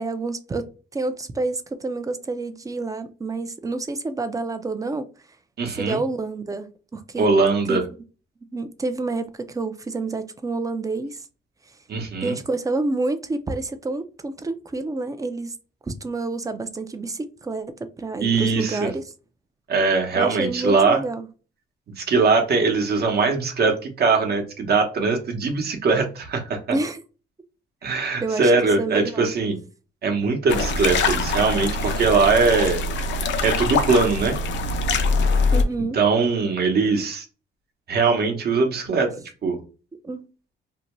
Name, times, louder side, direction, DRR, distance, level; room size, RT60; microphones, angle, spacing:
voice 1, 0.0-5.1 5.7-7.3 7.7-7.8 8.5-11.3 12.2-15.5 15.8-19.0 20.2-21.3 26.7-27.0 28.2-28.5 28.8-29.3 35.5-36.0 40.0-40.3, right 3 dB, 15° right, 0.4 m, -28 dB
voice 2, 5.6-6.0 7.2-7.9 11.9-12.4 18.2-18.9 19.7-21.0 22.0-26.6 27.8-29.6 30.0-32.8 33.4-34.4 35.9-37.2 37.9-39.1 39.4-39.6, right 4 dB, 55° right, 0.8 m, -21 dB
sound 1, 30.5-35.6, left 3 dB, 65° left, 0.5 m, -23 dB
2.6 x 2.2 x 3.0 m
cardioid pair, 90°, 20 cm